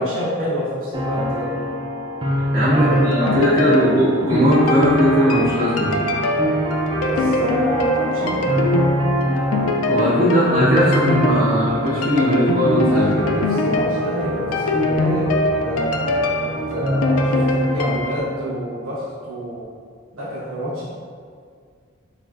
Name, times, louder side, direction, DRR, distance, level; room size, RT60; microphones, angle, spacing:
voice 1, 0.0-1.7 2.7-4.0 6.9-8.7 12.9-15.9 16.4-19.7 20.1-20.9, equal, 75° right, -9 dB, 1.2 m, -28 dB
sound 1, 0.9-18.6, equal, 20° right, 0.4 m, -24 dB
voice 2, 2.5-6.0 9.9-13.1, equal, 40° right, -12 dB, 1.4 m, -18 dB
sound 2, 2.9-18.2, left 2 dB, 80° left, 0.3 m, -23 dB
4.2 x 3.1 x 2.4 m, 2.1 s
head